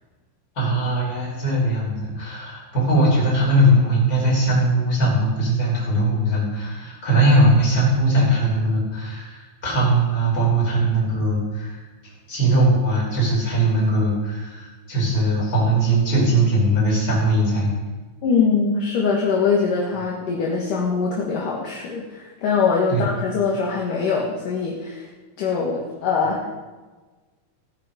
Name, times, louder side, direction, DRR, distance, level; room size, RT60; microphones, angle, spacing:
voice 1, 0.5-17.7 22.9-23.0 26.2-26.3, right 1 dB, 20° left, -5 dB, 5.0 m, -20 dB
voice 2, 18.2-25.1 25.4-26.5, left 5 dB, 60° left, -2 dB, 2.5 m, -22 dB
17.5 x 9.9 x 5.1 m, 1.3 s
omnidirectional pair, 5.6 m